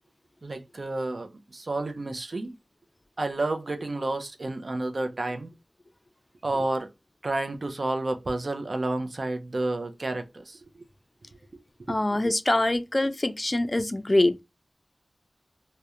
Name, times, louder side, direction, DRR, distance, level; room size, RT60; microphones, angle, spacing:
voice 1, 0.4-2.6 3.2-5.5 6.4-6.9 7.2-10.6 11.5-11.6 11.9-12.0, right 2 dB, 70° right, 0.4 m, -30 dB
voice 2, 11.9-14.4, left 1 dB, 40° left, 0.3 m, -24 dB
2.3 x 2.1 x 2.8 m
wide cardioid pair, 45°, 0 cm